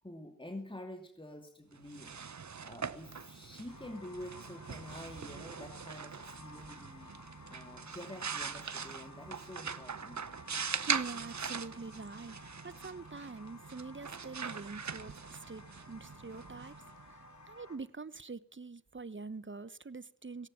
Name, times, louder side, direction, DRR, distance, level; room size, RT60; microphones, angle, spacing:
voice 1, 0.0-2.1 2.6-7.1 7.5-10.2, left 1 dB, 15° left, 2.6 m, -48 dB
sound 1, 1.8-17.4, right 6 dB, 60° right, 1.1 m, -42 dB
sound 2, 3.7-17.8, left 3 dB, 60° left, 3.9 m, -56 dB
voice 2, 10.7-16.7 17.1-20.5, right 4 dB, 35° right, 1.1 m, -45 dB
18.5 x 17.5 x 8.8 m
wide cardioid pair, 60°, 32 cm